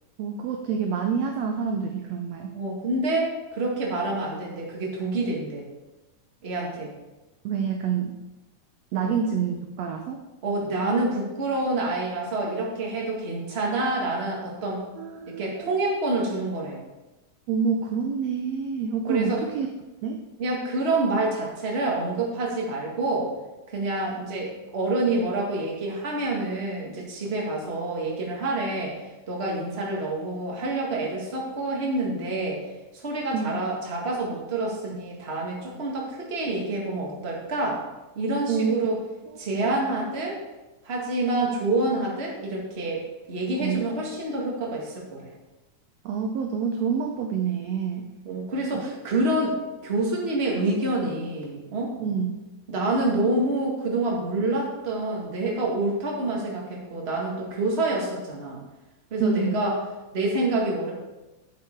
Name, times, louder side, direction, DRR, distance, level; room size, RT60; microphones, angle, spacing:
voice 1, 0.2-2.5 7.4-8.1 8.9-10.2 15.0-15.8 17.5-19.7 20.0-20.2 33.3-33.6 38.5-38.8 39.7-39.8 43.6-43.9 46.1-48.1 48.7-48.8 52.0-52.3 59.2-59.6, right 6 dB, 75° right, 3 dB, 1.6 m, -27 dB
voice 2, 2.5-5.7 6.4-6.9 9.0-9.1 10.4-14.8 15.3-16.8 19.1-19.4 20.4-23.3 23.7-29.0 29.3-32.6 32.9-37.8 38.1-39.0 39.4-40.4 40.8-45.3 48.2-49.6 49.8-51.9 52.7-58.6 59.1-59.7 60.1-60.9, right 2 dB, 25° right, -2 dB, 1.5 m, -27 dB
8.5 x 7.4 x 4.5 m, 1.1 s
omnidirectional pair, 3.7 m